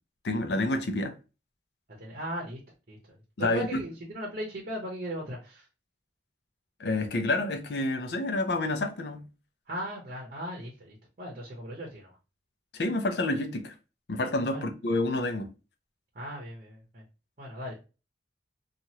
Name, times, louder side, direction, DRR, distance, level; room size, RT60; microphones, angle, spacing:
voice 1, 0.2-1.1 3.4-3.8 6.8-9.3 12.7-13.7 14.1-15.5, left 2 dB, 65° left, 0.5 m, -28 dB
voice 2, 2.0-2.6 2.9-3.0 3.4-5.7 9.7-12.2 14.5-14.7 16.1-17.0 17.4-17.9, equal, 50° right, 0.8 m, -38 dB
2.9 x 2.4 x 2.8 m
head